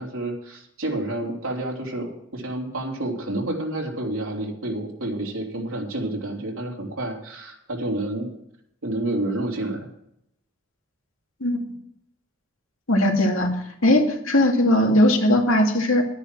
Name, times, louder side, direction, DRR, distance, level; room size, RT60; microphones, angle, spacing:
voice 1, 0.0-8.3 8.8-9.9, right 1 dB, 85° right, 0 dB, 3.4 m, -29 dB
voice 2, 12.9-13.6 13.8-16.0, left 1 dB, 80° left, 2 dB, 2.3 m, -19 dB
12.5 x 10.0 x 6.0 m, 0.76 s
head